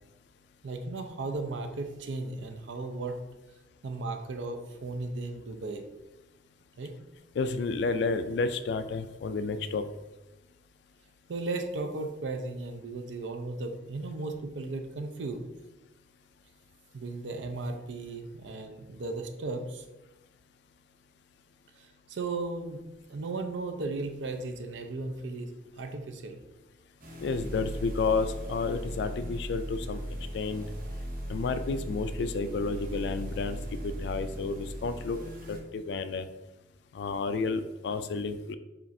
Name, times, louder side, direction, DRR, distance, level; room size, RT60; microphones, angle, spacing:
voice 1, 0.6-3.2 3.8-5.8 6.8-6.9 11.3-15.4 16.9-19.8 21.8-22.8 23.1-26.4, right 3 dB, 75° right, 6 dB, 0.5 m, -36 dB
voice 2, 7.4-9.8 27.2-30.0 30.3-30.6 31.3-36.3 36.9-38.5, left 4 dB, 65° left, 10 dB, 0.3 m, -31 dB
sound 1, 27.0-35.6, equal, 50° right, 0.8 m, -38 dB
7.1 x 2.5 x 2.6 m, 1.0 s
head